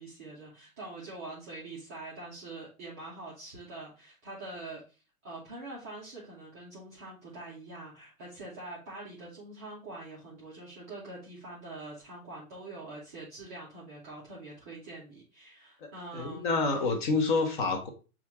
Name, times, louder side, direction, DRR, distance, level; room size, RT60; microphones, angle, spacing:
voice 1, 0.0-16.5, right 2 dB, 10° right, -7 dB, 0.4 m, -44 dB
voice 2, 15.8-17.9, left 3 dB, 35° left, 5 dB, 0.8 m, -28 dB
6.6 x 2.4 x 2.9 m, 0.34 s
figure-of-eight pair, 110°, 44 cm